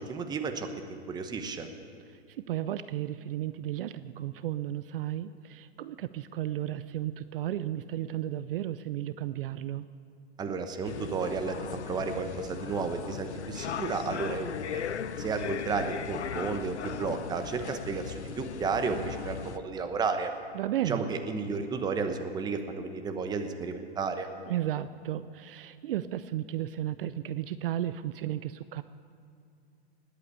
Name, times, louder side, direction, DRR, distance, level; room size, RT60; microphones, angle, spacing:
voice 1, 0.0-1.7 10.4-11.6 11.8-14.8 15.2-20.3 20.8-24.3, right 4 dB, 10° right, 7 dB, 1.0 m, -32 dB
voice 2, 2.1-9.9 20.5-21.1 24.5-28.8, right 12 dB, 55° right, 14 dB, 0.6 m, -34 dB
sound 1, 10.8-19.6, left 8 dB, 90° left, 0.9 m, -38 dB
20.0 x 8.4 x 8.3 m, 2.5 s
hypercardioid pair, 140°, 33 cm